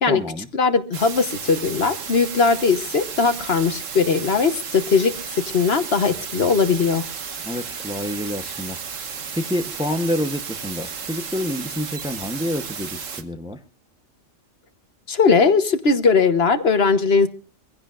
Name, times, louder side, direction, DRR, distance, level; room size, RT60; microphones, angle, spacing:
voice 1, 0.1-0.5 7.4-8.8 9.0-13.6, left 1 dB, 5° right, 7 dB, 0.8 m, -28 dB
voice 2, 0.6-5.1 5.5-7.0 15.1-17.3, left 5 dB, 55° left, 10 dB, 1.3 m, -19 dB
sound 1, 0.9-13.2, right 6 dB, 85° right, 1.6 m, -33 dB
24.5 x 16.0 x 2.5 m, 0.33 s
omnidirectional pair, 1.3 m